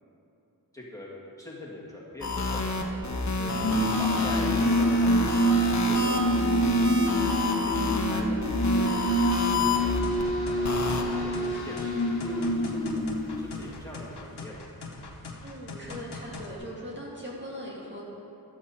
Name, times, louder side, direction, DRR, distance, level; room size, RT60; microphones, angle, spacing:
voice 1, 0.7-1.1 1.4-3.2 3.8-5.3 5.8-9.0 9.5-9.7 10.4-13.1 13.4-14.6, left 1 dB, 10° left, -6 dB, 2.1 m, -43 dB
sound 1, 2.2-10.2 10.6-11.0, left 3 dB, 45° left, 1.0 m, -28 dB
voice 2, 3.4-3.8 11.4-11.8 15.4-18.0, equal, 30° right, -5 dB, 1.9 m, -40 dB
sound 2, 3.5-13.9, equal, 70° left, 1.3 m, -26 dB
sound 3, 9.6-16.5, left 3 dB, 90° left, 1.0 m, -42 dB
11.0 x 7.7 x 4.3 m, 2.9 s
wide cardioid pair, 45°, 38 cm